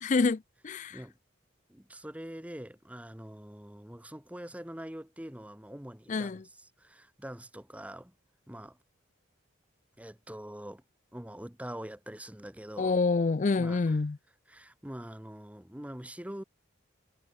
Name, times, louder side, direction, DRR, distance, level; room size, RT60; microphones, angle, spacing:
voice 1, 0.0-1.0 6.1-6.4 12.8-14.2, left 4 dB, 40° left, 0.4 m, -27 dB
voice 2, 1.7-8.1 8.5-8.8 10.0-10.8 11.1-13.0 13.6-14.0 14.5-16.4, right 1 dB, 5° right, 1.0 m, -44 dB
head